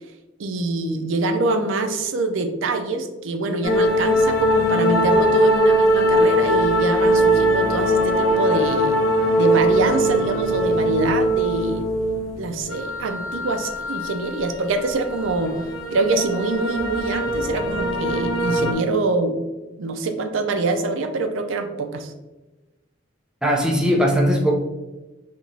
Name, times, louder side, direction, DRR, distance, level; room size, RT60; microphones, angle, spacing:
voice 1, 0.4-9.0 9.4-11.9 12.4-15.6 15.9-19.4 19.8-22.1, right 3 dB, 75° right, 7 dB, 0.4 m, -24 dB
sound 1, 3.6-18.7, equal, 90° left, 0.7 m, -21 dB
voice 2, 23.4-24.6, equal, 5° right, -1 dB, 0.5 m, -19 dB
4.8 x 2.9 x 2.7 m, 1.1 s
head